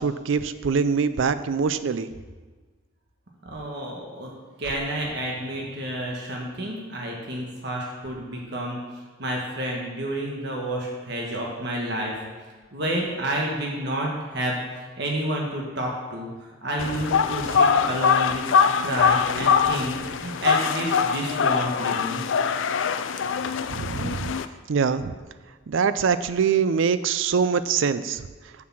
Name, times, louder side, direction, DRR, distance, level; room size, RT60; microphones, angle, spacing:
voice 1, 0.0-2.1 23.7-24.3 24.7-25.1 25.7-28.2, right 6 dB, 70° right, 13 dB, 0.4 m, -23 dB
voice 2, 3.4-4.3 4.6-8.8 9.2-12.2 12.7-14.6 15.0-16.3 16.6-18.4 18.8-22.2, right 1 dB, 55° right, -1 dB, 1.3 m, -30 dB
sound 1, 16.8-24.4, left 6 dB, 65° left, 0.4 m, -23 dB
7.3 x 6.6 x 6.0 m, 1.3 s
head